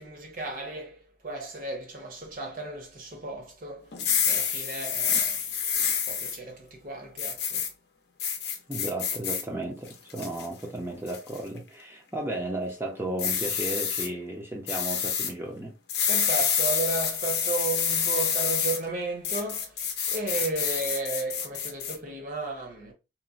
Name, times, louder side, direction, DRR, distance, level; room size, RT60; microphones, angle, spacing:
voice 1, 0.0-3.9 4.2-5.4 6.1-7.6 16.1-22.9, right 3 dB, 45° right, 0.8 m, -34 dB
sound 1, 3.9-6.4 7.2-7.7 8.2-9.4 9.9-10.5 11.1-11.4 13.2-14.1 14.7-15.3 15.9-18.8 19.2-22.0, left 7 dB, 55° left, 0.5 m, -27 dB
voice 2, 8.7-15.7, right 1 dB, 15° right, 0.5 m, -34 dB
3.0 x 2.0 x 2.5 m
head